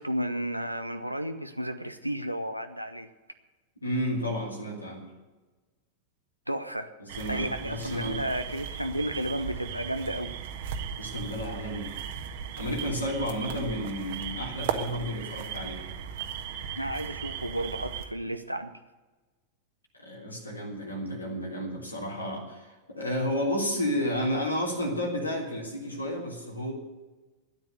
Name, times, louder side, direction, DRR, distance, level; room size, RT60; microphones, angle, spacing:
voice 1, 0.0-3.1 6.5-6.9 7.3-10.4 16.7-18.7, right 1 dB, 90° right, 7 dB, 0.7 m, -32 dB
voice 2, 3.8-5.1 7.0-8.2 11.0-11.9 12.6-15.8 20.0-26.7, equal, 80° left, -1 dB, 3.2 m, -32 dB
sound 1, 7.1-18.1, right 8 dB, 55° right, 1.4 m, -37 dB
13.5 x 10.0 x 8.2 m, 1.2 s
figure-of-eight pair, 90°, 0 cm